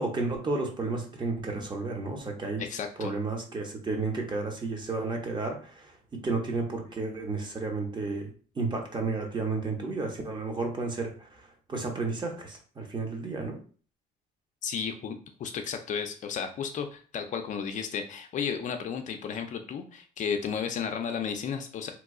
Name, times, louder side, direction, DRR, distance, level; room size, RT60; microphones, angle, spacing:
voice 1, 0.0-2.6 3.0-8.3 8.6-11.4 11.7-13.6, right 3 dB, 25° right, 2 dB, 0.8 m, -32 dB
voice 2, 2.6-3.2 14.6-21.9, left 7 dB, 50° left, 6 dB, 0.4 m, -33 dB
3.0 x 2.3 x 3.6 m, 0.41 s
cardioid pair, 110°, 17 cm